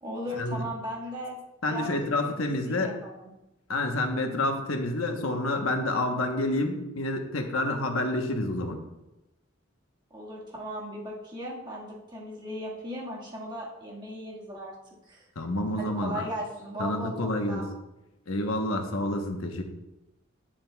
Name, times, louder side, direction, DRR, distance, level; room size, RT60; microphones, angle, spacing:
voice 1, 0.0-1.4 1.7-3.3 10.1-14.7 15.1-15.3 15.8-17.7, equal, 20° right, -5 dB, 1.8 m, -37 dB
voice 2, 1.6-2.9 3.7-8.8 15.4-16.2 16.8-17.6 18.3-19.6, left 1 dB, 90° left, 3 dB, 1.1 m, -28 dB
10.5 x 7.4 x 2.4 m, 0.95 s
head